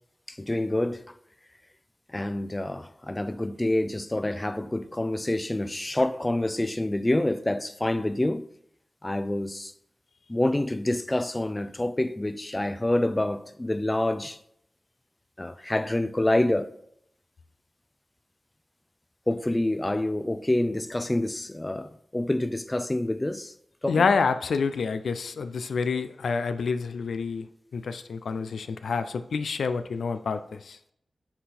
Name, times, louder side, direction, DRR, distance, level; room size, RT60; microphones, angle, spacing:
voice 1, 0.4-1.0 2.1-8.4 9.0-9.7 10.3-14.4 15.4-16.7 19.3-23.5 23.8-24.0, left 1 dB, 20° left, 0.4 m, -27 dB
voice 2, 23.9-30.8, left 5 dB, 90° left, 0.3 m, -28 dB
7.7 x 3.9 x 4.2 m
cardioid pair, 50°, 0 cm